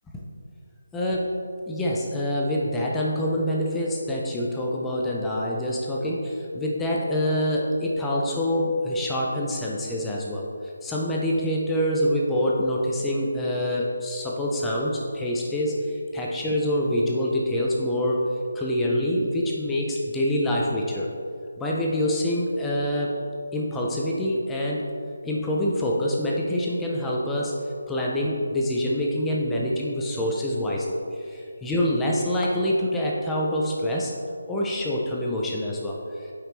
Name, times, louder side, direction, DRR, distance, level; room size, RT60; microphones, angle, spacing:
voice 1, 0.9-1.3 1.7-10.5 10.8-18.3 18.5-21.1 21.6-23.1 23.5-24.9 25.2-27.6 27.9-34.1 34.5-36.3, left 1 dB, 5° left, -4 dB, 0.3 m, -26 dB
7.3 x 5.0 x 3.2 m, 2.3 s
hypercardioid pair, 180°, 0 cm